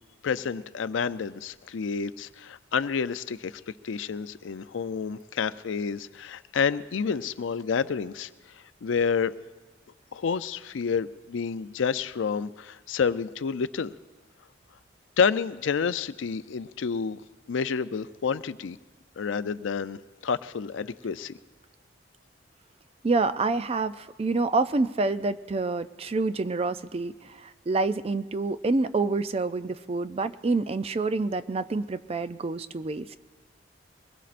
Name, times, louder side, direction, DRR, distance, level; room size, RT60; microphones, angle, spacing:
voice 1, 0.2-8.3 8.8-9.3 10.1-13.9 15.2-17.2 17.5-18.8 19.2-21.3, left 6 dB, 90° left, 14 dB, 0.5 m, -29 dB
voice 2, 23.0-33.2, right 3 dB, 30° right, 12 dB, 0.4 m, -27 dB
24.0 x 20.5 x 2.5 m, 1.2 s
head